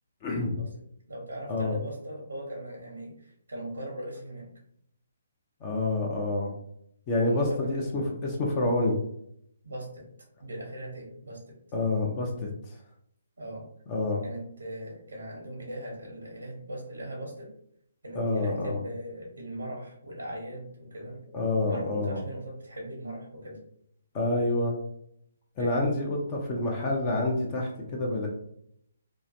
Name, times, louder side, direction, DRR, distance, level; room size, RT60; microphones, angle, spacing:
voice 1, 0.2-0.6 1.5-1.7 5.6-6.5 7.1-9.0 11.7-12.5 13.9-14.2 18.1-18.8 21.3-22.2 24.1-24.8 25.6-28.3, left 2 dB, 30° left, -1 dB, 0.7 m, -27 dB
voice 2, 1.1-4.5 7.2-7.9 9.6-10.1 10.4-11.6 13.4-13.7 14.2-17.5 18.0-21.2 21.6-23.6 25.6-25.9, right 1 dB, 90° right, -1 dB, 0.9 m, -39 dB
2.9 x 2.4 x 2.7 m, 0.71 s
figure-of-eight pair, 140°, 0 cm